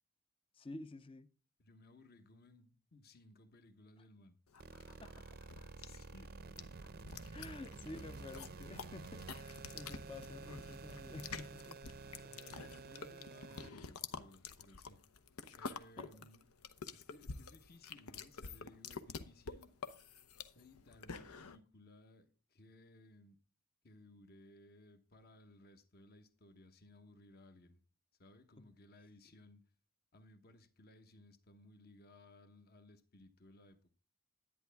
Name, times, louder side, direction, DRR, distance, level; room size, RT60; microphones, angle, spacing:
voice 1, 0.5-1.3 5.0-5.4 7.3-11.9 16.0-16.3 28.6-28.7, left 2 dB, 25° left, 0.5 m, -51 dB
voice 2, 1.6-4.4 5.8-6.4 12.2-15.0 15.6-16.5 16.9-19.8 20.5-23.4 23.8-27.8 28.2-29.6 30.1-33.9, left 2 dB, 45° left, 1.1 m, -61 dB
sound 1, 4.5-21.6, left 5 dB, 90° left, 0.8 m, -49 dB
sound 2, 4.6-13.7, right 3 dB, 45° right, 0.6 m, -51 dB
11.0 x 9.4 x 3.5 m
head